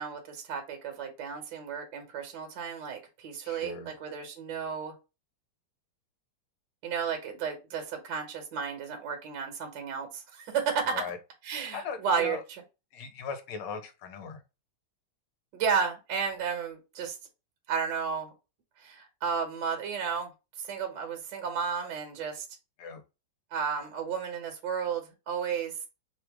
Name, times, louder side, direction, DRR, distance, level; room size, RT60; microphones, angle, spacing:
voice 1, 0.0-4.9 6.8-11.0 11.4-12.4 15.5-17.2 17.7-18.3 18.8-20.3 20.6-22.5 23.5-25.7, right 6 dB, 60° right, 1.5 m, -33 dB
voice 2, 3.4-3.9 10.9-11.2 11.7-12.4 12.9-14.4 22.8-23.0, left 5 dB, 65° left, 1.2 m, -38 dB
3.5 x 2.4 x 4.5 m
omnidirectional pair, 2.4 m